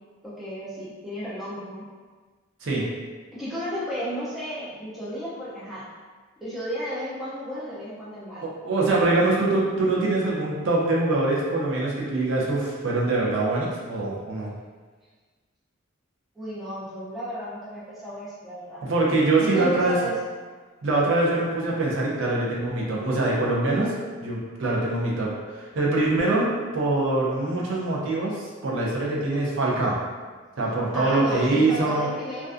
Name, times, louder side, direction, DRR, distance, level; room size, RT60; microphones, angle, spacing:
voice 1, 0.2-1.9 3.3-5.9 6.4-8.5 16.4-18.8 19.4-20.2 30.9-32.5, equal, ahead, -10 dB, 0.4 m, -33 dB
voice 2, 8.6-14.5 18.8-20.0 20.8-23.9 24.2-30.0 30.6-32.0, right 2 dB, 60° right, -5 dB, 0.5 m, -24 dB
2.4 x 2.2 x 2.4 m, 1.4 s
head